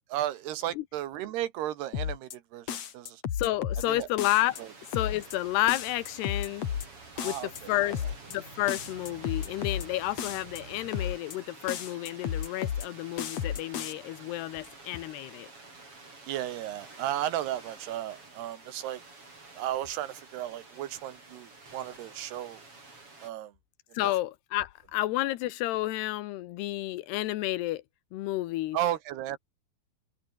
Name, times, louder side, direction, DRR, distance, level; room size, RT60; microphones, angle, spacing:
voice 1, 0.1-3.2 3.9-4.1 4.6-4.7 7.2-8.0 16.3-19.0 19.6-22.6 23.2-23.5 24.0-24.1 28.7-29.4, right 12 dB, 85° right, 3.4 m, -34 dB
sound 1, 1.9-2.4 2.7-3.9 4.2-4.6 4.9-5.4 5.7-6.9 7.2-7.6 7.9-8.4 8.7-9.9 10.2-10.6 10.9-11.4 11.7-12.9 13.2-13.9, left 9 dB, 50° left, 2.6 m, -33 dB
voice 2, 3.4-4.6 4.9-6.7 7.2-7.4 7.7-8.0 8.3-15.5 23.9-27.8 28.1-28.8, left 16 dB, 85° left, 3.1 m, -30 dB
sound 2, 4.4-23.3, right 3 dB, 35° right, 7.6 m, -50 dB
sound 3, 5.0-10.9, right 6 dB, 50° right, 4.8 m, -52 dB
omnidirectional pair, 4.7 m